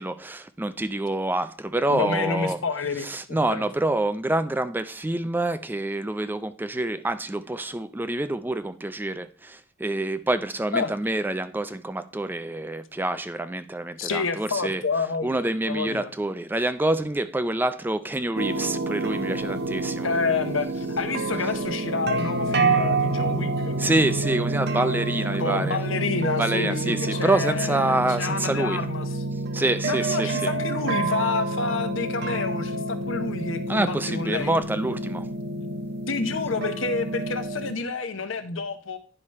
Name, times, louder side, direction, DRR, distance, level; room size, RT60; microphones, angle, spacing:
voice 1, 0.0-2.6 3.0-14.8 15.2-20.1 23.8-25.8 26.4-28.8 29.5-30.5 33.7-35.3, right 2 dB, 10° right, 0.4 m, -27 dB
voice 2, 1.9-3.7 10.7-10.9 14.0-16.1 20.0-23.8 25.4-29.2 29.8-34.6 36.1-39.0, left 4 dB, 90° left, 0.9 m, -29 dB
sound 1, 18.4-37.7, right 2 dB, 55° right, 0.9 m, -28 dB
9.9 x 4.9 x 4.2 m
head